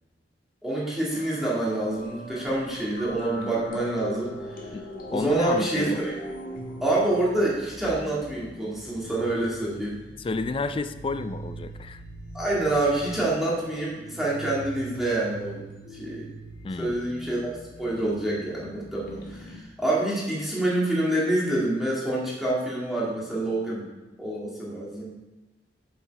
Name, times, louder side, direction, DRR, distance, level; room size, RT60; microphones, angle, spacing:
voice 1, 0.6-4.3 5.1-6.2 6.8-10.0 12.3-15.6 15.9-16.3 16.8-17.5 17.8-23.9 24.2-25.2, right 1 dB, ahead, -7 dB, 2.1 m, -27 dB
sound 1, 1.1-19.6, right 1 dB, 55° left, 1.7 m, -42 dB
voice 2, 5.1-6.1 10.2-12.0 16.6-17.0, left 3 dB, 30° left, 11 dB, 0.4 m, -31 dB
7.4 x 7.1 x 4.7 m, 1.1 s
head